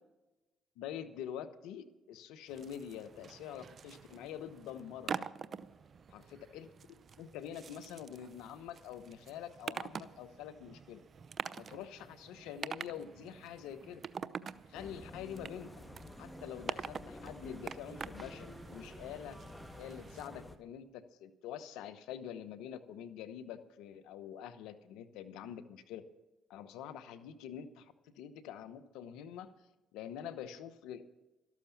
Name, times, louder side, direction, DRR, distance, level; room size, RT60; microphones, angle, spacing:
voice 1, 0.8-5.3 6.1-6.7 7.2-11.0 11.6-14.0 14.7-15.9 16.2-19.4 19.8-26.0 26.5-29.5 29.9-31.0, left 9 dB, 80° left, 11 dB, 1.0 m, -46 dB
sound 1, 2.5-20.3, right 6 dB, 50° right, 0.7 m, -46 dB
sound 2, 14.7-20.6, left 1 dB, 15° left, 1.5 m, -50 dB
13.0 x 12.5 x 7.1 m, 1.0 s
supercardioid pair, 55°, 0 cm